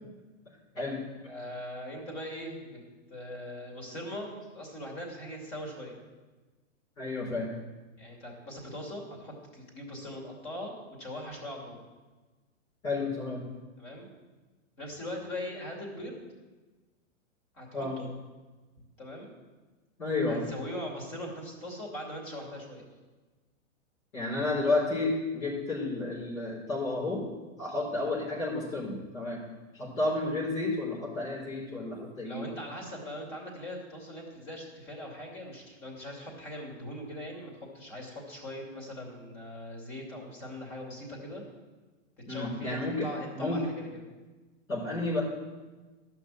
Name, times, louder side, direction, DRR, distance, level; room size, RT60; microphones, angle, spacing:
voice 1, 1.3-2.8 3.1-5.9 8.0-10.7 11.0-11.8 13.8-14.1 14.8-16.2 17.5-18.1 19.0-19.3 20.2-22.8 32.2-41.4 42.3-44.0, left 1 dB, 35° left, -1 dB, 2.8 m, -41 dB
voice 2, 7.0-7.5 12.8-13.4 17.7-18.0 20.0-20.4 24.1-27.2 27.6-29.4 29.7-32.5 42.3-43.1 43.3-43.6 44.7-45.2, left 2 dB, 75° left, -7 dB, 4.4 m, -31 dB
12.0 x 6.1 x 7.3 m, 1.2 s
hypercardioid pair, 170°, 39 cm